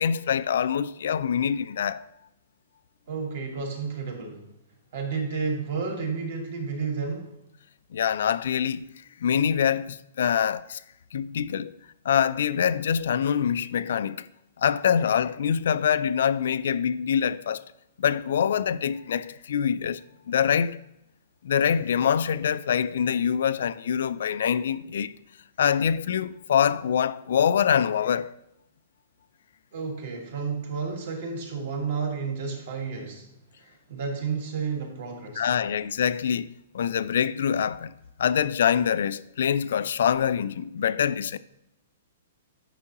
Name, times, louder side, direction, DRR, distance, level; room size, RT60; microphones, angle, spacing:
voice 1, 0.0-2.1 7.9-10.8 11.1-11.8 12.0-14.3 14.6-17.6 18.0-20.0 20.3-20.8 21.4-25.1 25.6-28.3 35.4-37.9 38.2-41.4, left 8 dB, 70° left, 0.3 m, -25 dB
voice 2, 3.1-4.5 4.9-7.3 29.7-33.3 33.6-35.5, right 5 dB, 55° right, 1.6 m, -31 dB
9.9 x 5.4 x 2.9 m
hypercardioid pair, 165°, 0 cm